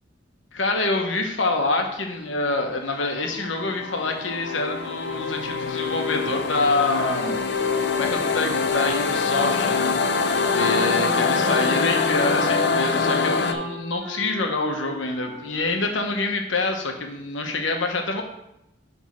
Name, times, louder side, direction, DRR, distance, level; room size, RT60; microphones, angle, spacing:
voice 1, 0.5-7.4 7.9-9.9 10.5-18.2, left 3 dB, 85° left, 3 dB, 1.1 m, -26 dB
sound 1, 2.8-13.5, left 4 dB, 60° left, 0.6 m, -24 dB
Wind instrument woodwind instrument, 5.8-10.0 10.7-16.1, right 1 dB, 45° right, 1.7 m, -39 dB
7.4 x 3.6 x 5.8 m, 0.84 s
head